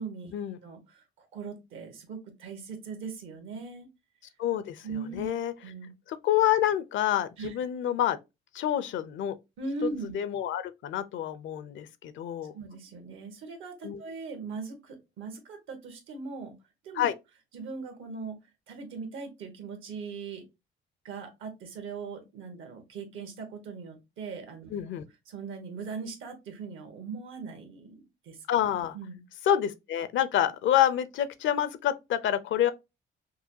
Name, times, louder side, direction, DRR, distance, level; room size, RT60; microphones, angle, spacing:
voice 1, 0.0-0.3 0.6-3.9 4.8-5.3 5.6-5.9 7.4-7.5 9.6-10.2 12.5-16.5 16.8-17.1 17.5-18.4 18.7-20.4 21.0-24.7 25.3-28.4 28.9-29.2, right 4 dB, 80° right, 1.4 m, -39 dB
voice 2, 4.4-5.5 6.1-8.2 8.5-9.4 10.1-12.5 13.8-14.0 16.9-17.1 24.7-25.0 28.5-29.0 29.5-32.7, left 11 dB, 75° left, 0.6 m, -27 dB
5.5 x 2.2 x 2.7 m
cardioid pair, 90°, 20 cm